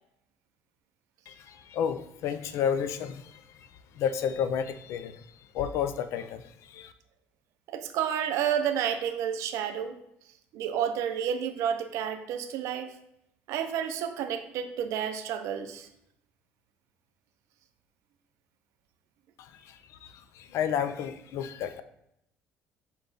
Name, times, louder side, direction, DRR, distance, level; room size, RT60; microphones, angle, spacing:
voice 1, 1.3-3.7 3.9-6.9 19.4-21.8, left 8 dB, 70° left, 11 dB, 0.4 m, -32 dB
voice 2, 7.7-10.0 10.5-12.9 13.5-15.9, right 9 dB, 75° right, 8 dB, 0.5 m, -30 dB
4.9 x 2.3 x 3.9 m, 0.78 s
supercardioid pair, 80°, 5 cm